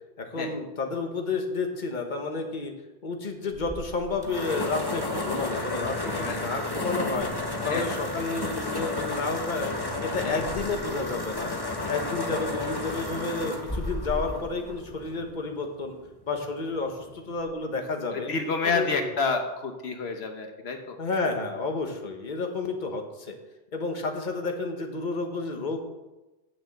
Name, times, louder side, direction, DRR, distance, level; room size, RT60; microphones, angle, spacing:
voice 1, 0.2-2.7 3.0-7.3 7.6-11.5 11.9-15.9 16.3-18.3 18.6-19.0 21.0-23.3 23.7-25.8, left 3 dB, 50° left, 4 dB, 1.4 m, -31 dB
sound 1, 3.5-15.4, left 2 dB, 20° left, 1.3 m, -32 dB
voice 2, 6.1-6.5 7.7-8.0 10.2-10.4 18.1-21.0, left 4 dB, 85° left, 5 dB, 1.3 m, -29 dB
8.7 x 7.0 x 7.7 m, 1.1 s
omnidirectional pair, 1.0 m